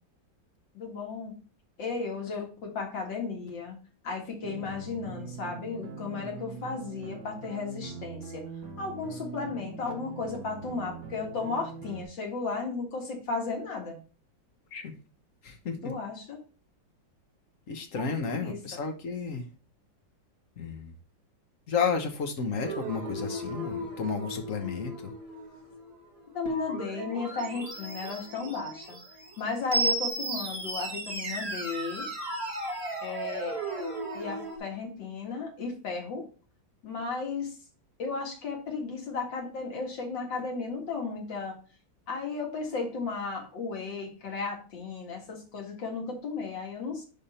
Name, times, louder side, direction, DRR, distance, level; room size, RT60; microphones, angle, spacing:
voice 1, 0.7-1.3 1.8-3.8 4.0-8.5 8.8-14.0 15.8-16.4 17.9-18.0 18.3-18.8 26.3-29.0 29.4-32.1 33.0-33.6 34.1-36.3 36.8-37.5 38.0-41.6 42.1-47.0, left 4 dB, 70° left, 2.7 m, -34 dB
sound 1, 4.4-12.0, right 5 dB, 65° right, 1.9 m, -42 dB
voice 2, 15.4-15.9 17.7-19.5 20.6-20.9 21.7-25.1, left 5 dB, 50° left, 1.3 m, -32 dB
sound 2, 22.6-34.6, right 1 dB, 35° right, 2.1 m, -35 dB
10.5 x 3.7 x 4.3 m
omnidirectional pair, 2.1 m